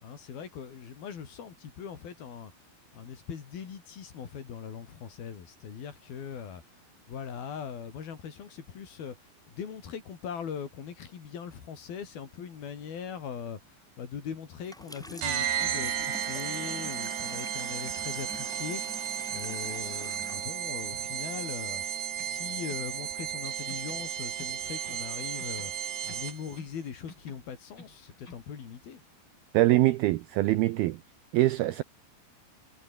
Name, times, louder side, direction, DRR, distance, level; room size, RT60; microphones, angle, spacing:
voice 1, 0.0-2.5 2.9-6.6 7.1-21.8 22.2-25.7 26.0-29.0, left 7 dB, 55° left, 4.8 m, -41 dB
Water tap faucet / Sink (filling or washing), 14.6-21.6, equal, ahead, 3.3 m, -46 dB
sound 1, 15.2-26.6, right 9 dB, 50° right, 3.1 m, -34 dB
sound 2, 22.1-23.4 23.7-25.1 25.4-26.8 27.1-28.5, left 2 dB, 25° left, 7.6 m, -53 dB
voice 2, 29.5-31.0 31.3-31.8, right 17 dB, 85° right, 2.2 m, -23 dB
omnidirectional pair, 5.3 m